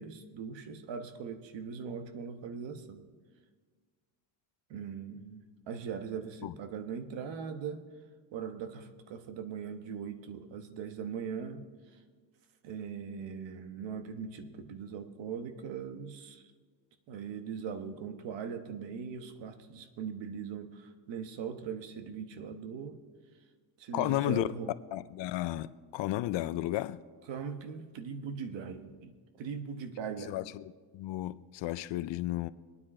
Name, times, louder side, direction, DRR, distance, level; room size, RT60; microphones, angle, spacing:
voice 1, 0.0-3.0 4.7-7.9 8.3-11.7 12.6-16.4 17.1-23.0 23.8-24.7 27.3-29.1 29.4-30.4, right 6 dB, 60° right, 1.3 m, -40 dB
voice 2, 23.9-24.5 24.9-27.0 30.2-32.5, left 15 dB, 65° left, 0.6 m, -33 dB
24.5 x 9.8 x 4.3 m
cardioid pair, 140°, 49 cm